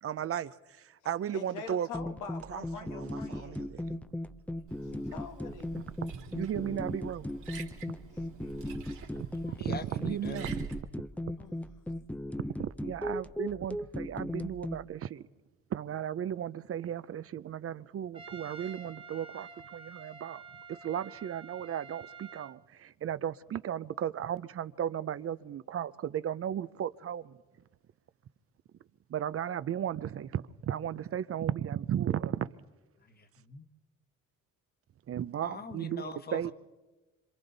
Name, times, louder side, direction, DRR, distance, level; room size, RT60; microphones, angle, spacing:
voice 1, 0.0-1.9 2.5-4.0 5.8-5.9 6.3-7.3 9.2-9.3 9.6-10.5 12.6-15.2 15.7-20.4 20.7-27.4 29.1-32.5 35.1-36.5, right 10 dB, 50° right, 0.6 m, -35 dB
voice 2, 1.3-3.6 4.9-5.7 8.1-8.6 11.4-11.6, left 6 dB, 90° left, 1.5 m, -45 dB
sound 1, 1.9-14.8, left 1 dB, 5° left, 0.6 m, -38 dB
Liquid, 4.7-10.8, right 7 dB, 80° right, 2.6 m, -47 dB
voice 3, 9.6-10.4 33.1-33.6 35.4-36.5, left 3 dB, 30° left, 1.4 m, -43 dB
Trumpet, 18.1-22.6, right 5 dB, 20° right, 1.4 m, -49 dB
27.0 x 26.0 x 4.0 m
cardioid pair, 90°, 30 cm